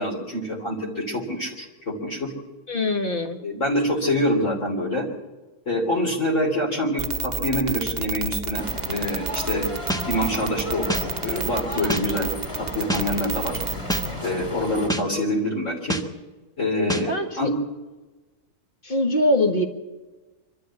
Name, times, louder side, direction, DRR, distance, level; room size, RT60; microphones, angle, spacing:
voice 1, 0.0-2.3 3.4-5.1 5.7-9.7 10.1-12.3 12.6-13.6 14.2-16.0 16.6-17.5, left 1 dB, 55° left, -2 dB, 3.6 m, -26 dB
voice 2, 2.7-3.4 17.1-17.5 18.8-19.6, left 1 dB, 35° left, 4 dB, 1.8 m, -22 dB
sound 1, 7.0-14.1, right 5 dB, 35° right, 0.9 m, -29 dB
sound 2, 8.5-14.9, left 1 dB, 20° left, 2.9 m, -35 dB
sound 3, 9.9-10.0 10.9-11.0 11.9-12.0 12.9-13.0 13.9-14.0 14.9-15.0 15.9-16.0 16.9-17.0, equal, 5° left, 1.3 m, -25 dB
24.5 x 13.0 x 8.4 m, 1.2 s
omnidirectional pair, 1.6 m